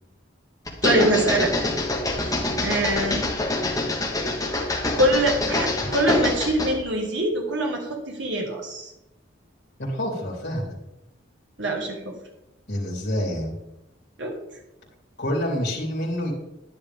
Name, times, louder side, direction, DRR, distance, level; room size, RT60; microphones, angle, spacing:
sound 1, 0.7-6.8, left 2 dB, 15° left, 1.4 m, -25 dB
voice 1, 0.8-1.7 2.6-3.3 4.6-8.9 11.6-12.1 14.2-14.4, right 1 dB, 65° right, 0 dB, 1.7 m, -24 dB
voice 2, 9.8-10.7 12.7-13.5 15.2-16.3, equal, 55° left, -4 dB, 3.4 m, -27 dB
10.5 x 10.5 x 3.6 m, 0.89 s
head